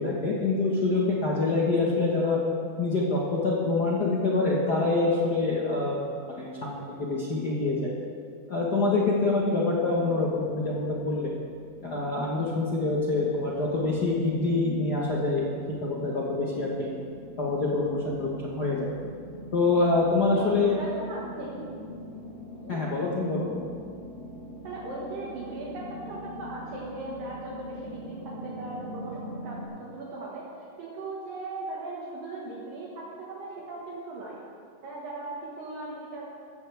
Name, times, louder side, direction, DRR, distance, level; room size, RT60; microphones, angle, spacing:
voice 1, 0.0-2.4 2.8-6.0 6.3-7.9 8.5-11.3 11.8-15.5 15.8-16.9 17.4-18.8 19.5-20.7 22.7-23.5, left 3 dB, 85° left, -4 dB, 0.9 m, -26 dB
sound 1, 9.7-29.6, equal, 25° right, 4.2 m, -44 dB
voice 2, 20.3-21.7 22.6-22.8 24.6-30.4 30.8-34.5 34.8-36.2, right 2 dB, 70° right, -5 dB, 3.2 m, -38 dB
15.0 x 14.5 x 3.5 m, 2.3 s
omnidirectional pair, 4.3 m